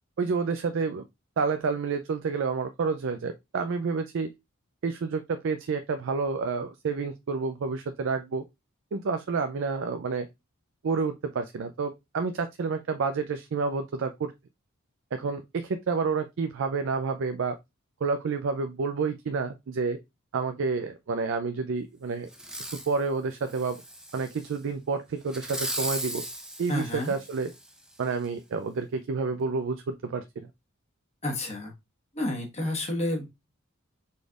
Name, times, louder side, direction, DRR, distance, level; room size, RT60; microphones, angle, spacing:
voice 1, 0.2-1.0 1.4-4.3 4.8-8.4 8.9-10.3 10.8-14.3 15.1-17.6 18.0-20.0 20.3-22.3 22.9-23.8 24.1-26.2 26.6-27.5 28.0-30.2, right 4 dB, 65° right, 0.4 m, -29 dB
Fireworks, 22.3-22.9 23.5-24.5 25.3-27.7 28.2-28.3, right 1 dB, 5° right, 0.7 m, -37 dB
voice 2, 26.7-27.1 31.2-31.7 32.1-33.3, left 1 dB, 30° left, 1.2 m, -30 dB
5.0 x 4.1 x 2.4 m
head